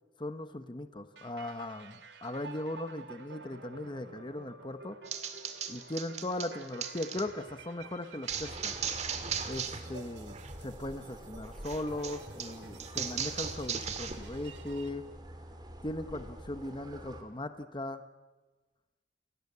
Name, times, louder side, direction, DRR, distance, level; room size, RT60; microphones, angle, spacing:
voice 1, 0.2-5.0 5.7-8.8 9.5-15.0 15.8-18.0, left 1 dB, 25° left, 10 dB, 1.0 m, -38 dB
sound 1, 1.2-14.9, right 4 dB, 80° right, 2.2 m, -52 dB
sound 2, 5.1-7.2 8.3-9.8 10.1-10.6 11.6-14.1, right 7 dB, 40° right, 2.0 m, -37 dB
sound 3, 8.3-17.2, right 1 dB, 25° right, 2.7 m, -47 dB
28.0 x 18.0 x 8.5 m, 1.2 s
head